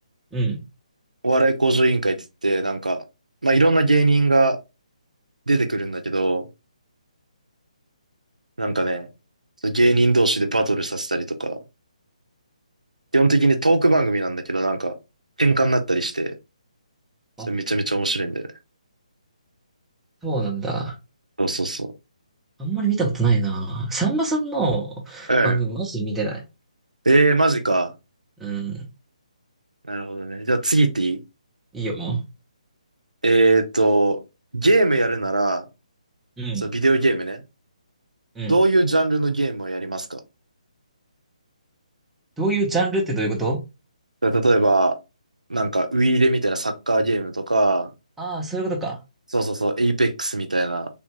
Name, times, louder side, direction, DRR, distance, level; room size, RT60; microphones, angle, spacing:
voice 1, 0.3-0.6 17.4-17.5 20.2-20.9 22.6-26.4 28.4-28.8 31.7-32.2 36.4-36.7 38.4-38.5 42.4-43.6 48.2-49.0, right 3 dB, 5° right, 0.7 m, -25 dB
voice 2, 1.2-2.2 2.4-3.0 3.4-4.6 5.5-6.5 8.6-9.1 9.6-11.6 13.1-14.9 15.4-16.3 17.5-18.5 21.4-21.9 25.3-25.6 27.1-27.9 29.9-31.2 33.2-34.2 34.5-35.6 36.6-37.4 38.5-40.2 44.2-45.0 45.5-47.9 49.3-50.9, right 2 dB, 85° right, 0.6 m, -20 dB
3.4 x 2.5 x 3.0 m
figure-of-eight pair, 140°, 4 cm